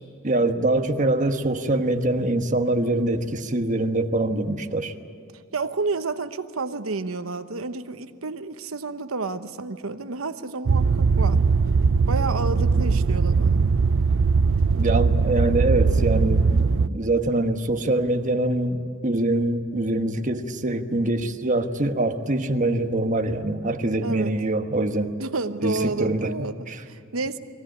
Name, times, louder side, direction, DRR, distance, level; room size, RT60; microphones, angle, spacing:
voice 1, 0.2-4.9 14.7-25.1 25.6-26.3 26.7-26.8, right 2 dB, 40° right, 6 dB, 1.2 m, -24 dB
voice 2, 5.5-11.4 12.1-13.7 24.0-24.3 25.2-27.4, right 3 dB, 85° right, 9 dB, 1.0 m, -30 dB
sound 1, 10.7-16.9, right 4 dB, 65° right, 0.5 m, -20 dB
23.0 x 16.5 x 10.0 m, 2.4 s
head